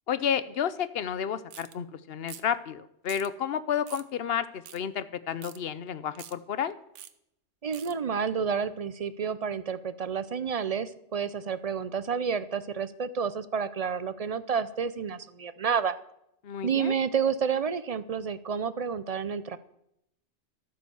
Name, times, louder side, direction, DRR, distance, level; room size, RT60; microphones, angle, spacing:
voice 1, 0.1-6.7 16.4-16.9, left 8 dB, 60° left, 14 dB, 0.9 m, -31 dB
sound 1, 1.5-1.7 2.3-2.6 3.1-3.3 3.9-4.1 4.6-4.8 5.4-5.6 6.1-6.3 7.0-7.1 7.7-7.9, right 10 dB, 90° right, 1.1 m, -45 dB
voice 2, 7.6-15.9 16.6-19.6, right 6 dB, 45° right, 14 dB, 0.5 m, -30 dB
12.5 x 9.1 x 7.0 m, 0.79 s
omnidirectional pair, 1.2 m